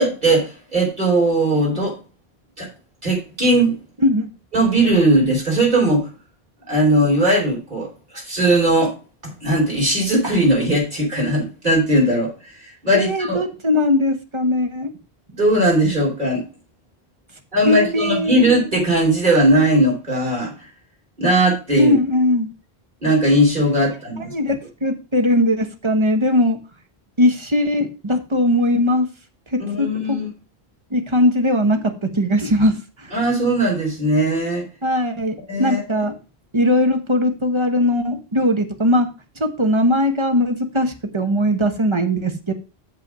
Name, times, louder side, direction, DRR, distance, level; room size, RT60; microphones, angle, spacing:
voice 1, 0.0-2.0 2.6-2.7 3.0-3.8 4.5-6.1 6.7-7.9 8.1-8.9 9.2-12.3 12.6-13.4 15.4-16.4 17.5-20.5 21.2-21.9 23.0-24.3 29.6-30.3 33.1-34.7 35.5-36.1, right 1 dB, 50° right, -3 dB, 4.5 m, -18 dB
voice 2, 12.9-14.9 17.6-18.4 21.8-22.5 24.3-24.6 24.8-26.6 27.2-29.1 29.5-30.2 30.9-33.1 34.8-36.1 36.5-39.1 39.4-42.5, left 1 dB, 30° right, 5 dB, 1.2 m, -19 dB
7.0 x 5.5 x 6.1 m, 0.32 s
omnidirectional pair, 1.0 m